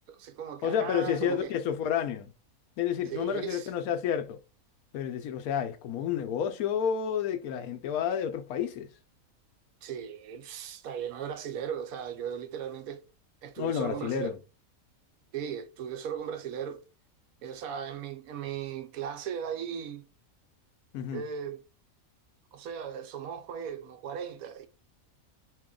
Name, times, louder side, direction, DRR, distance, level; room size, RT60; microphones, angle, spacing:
voice 1, 0.1-1.5 3.1-3.7 9.8-13.0 13.4-14.3 15.3-16.8 17.4-20.1 21.1-21.6 22.5-24.7, right 8 dB, 80° right, 1.1 m, -37 dB
voice 2, 0.6-2.3 2.8-4.4 4.9-8.9 13.6-14.4 20.9-21.2, left 8 dB, 85° left, 1.1 m, -30 dB
2.9 x 2.9 x 3.6 m
omnidirectional pair, 1.5 m